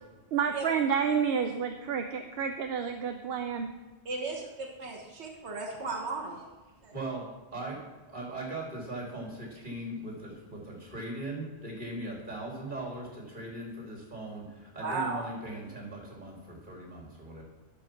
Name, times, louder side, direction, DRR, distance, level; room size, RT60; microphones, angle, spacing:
voice 1, 0.3-3.7, right 7 dB, 70° right, 6 dB, 0.8 m, -29 dB
voice 2, 4.0-6.4 6.8-6.9 14.8-15.2, right 3 dB, 85° right, 1 dB, 1.6 m, -35 dB
voice 3, 6.9-17.4, right 2 dB, 45° right, -2 dB, 3.0 m, -39 dB
12.0 x 5.1 x 5.9 m, 1.3 s
omnidirectional pair, 1.1 m